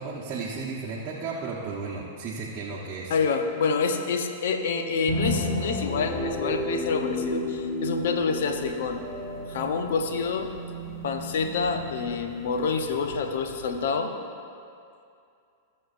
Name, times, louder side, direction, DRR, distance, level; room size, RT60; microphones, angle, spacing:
voice 1, 0.0-3.1, right 4 dB, 35° right, -6 dB, 1.3 m, -34 dB
voice 2, 3.1-9.0 9.5-10.5 11.0-14.1, left 5 dB, 65° left, 5 dB, 1.0 m, -27 dB
sound 1, 5.1-13.8, left 1 dB, 35° left, 2.5 m, -33 dB
19.5 x 6.5 x 2.7 m, 2.4 s
figure-of-eight pair, 100°, 0 cm